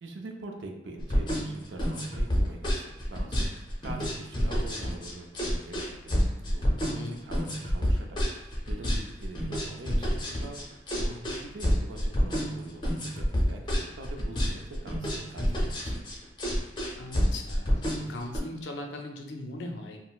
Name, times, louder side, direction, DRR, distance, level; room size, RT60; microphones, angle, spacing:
voice 1, 0.0-6.1 6.5-16.0, right 2 dB, 90° right, 3 dB, 0.5 m, -44 dB
sound 1, 1.0-18.4, equal, 25° left, 0.5 m, -28 dB
voice 2, 17.0-17.7 18.0-20.1, left 1 dB, 80° left, 2 dB, 0.5 m, -39 dB
3.8 x 2.0 x 2.3 m, 0.98 s
head